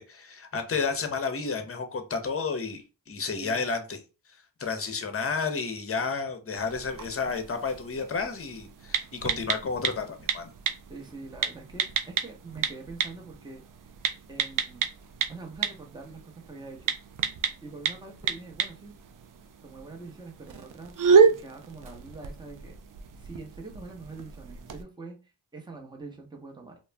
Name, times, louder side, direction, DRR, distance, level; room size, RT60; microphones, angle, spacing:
voice 1, 0.0-4.0 4.6-10.5, left 4 dB, 30° left, 0.7 m, -31 dB
sound 1, 6.6-24.8, right 6 dB, 45° right, 0.5 m, -30 dB
voice 2, 10.9-13.6 14.3-14.9 15.3-16.9 17.6-18.9 19.6-20.9 21.3-22.7 23.2-26.8, right 3 dB, 10° right, 0.8 m, -44 dB
2.3 x 2.1 x 3.2 m
supercardioid pair, 40°, 48 cm